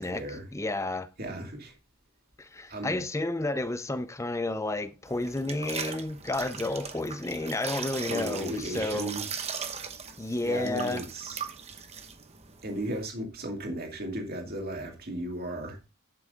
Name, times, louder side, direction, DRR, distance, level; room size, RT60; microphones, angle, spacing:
voice 1, 0.0-0.4 1.2-1.7 2.7-3.0 8.1-9.2 10.4-11.4 12.6-15.8, right 1 dB, 45° right, 2.3 m, -35 dB
voice 2, 0.5-1.1 2.4-9.1 10.2-11.0, left 2 dB, 15° left, 0.5 m, -31 dB
sound 1, 5.0-13.1, right 6 dB, 30° right, 0.9 m, -39 dB
11.0 x 5.9 x 3.8 m
head